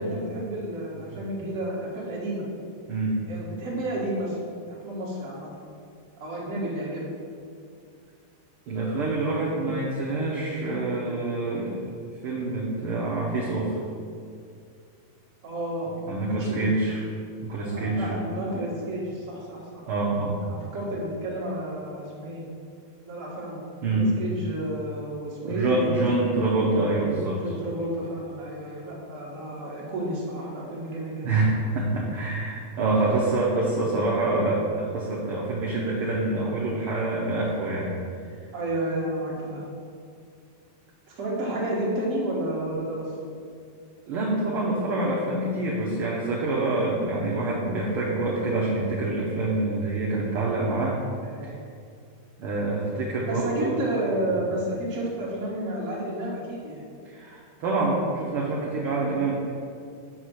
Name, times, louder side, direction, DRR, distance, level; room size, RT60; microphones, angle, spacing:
voice 1, 0.0-2.5 3.3-4.4 4.6-5.5 6.2-7.1 15.4-15.9 16.2-16.7 17.6-19.8 20.4-22.4 23.0-23.6 23.9-26.0 27.3-31.4 32.9-33.1 38.5-39.6 41.1-43.1 51.2-51.5 53.3-56.8, right 1 dB, 35° right, -5 dB, 1.4 m, -31 dB
voice 2, 2.9-3.2 8.7-13.8 16.1-17.0 17.4-18.2 19.9-20.4 23.8-24.1 25.4-27.4 31.2-37.9 44.1-51.0 51.4-51.5 52.4-53.8 57.0-59.4, right 2 dB, 65° right, -4 dB, 1.4 m, -26 dB
5.9 x 5.5 x 6.3 m, 2.3 s
omnidirectional pair, 3.5 m